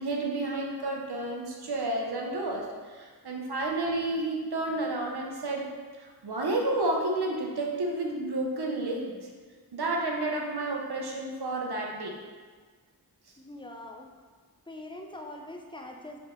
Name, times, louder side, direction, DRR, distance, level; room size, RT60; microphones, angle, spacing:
voice 1, 0.0-5.7 6.0-9.2 9.7-12.1, right 2 dB, 75° right, -1 dB, 0.8 m, -31 dB
voice 2, 13.4-14.1 14.7-16.2, left 1 dB, 15° left, 2 dB, 0.4 m, -43 dB
3.6 x 3.4 x 3.8 m, 1.5 s
wide cardioid pair, 60°, 39 cm